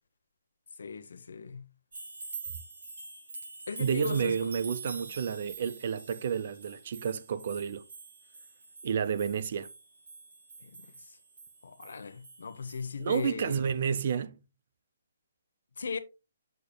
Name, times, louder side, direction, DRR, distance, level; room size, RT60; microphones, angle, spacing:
voice 1, 0.8-1.6 3.7-4.4 10.6-11.2 11.6-13.6 15.8-16.0, left 5 dB, 75° left, 0.9 m, -38 dB
sound 1, 1.9-12.9 13.1-13.3, right 4 dB, 70° right, 3.7 m, -46 dB
voice 2, 3.8-7.8 8.8-9.7 13.0-14.4, right 7 dB, 45° right, 0.5 m, -30 dB
8.5 x 6.5 x 2.2 m
hypercardioid pair, 170°, 0 cm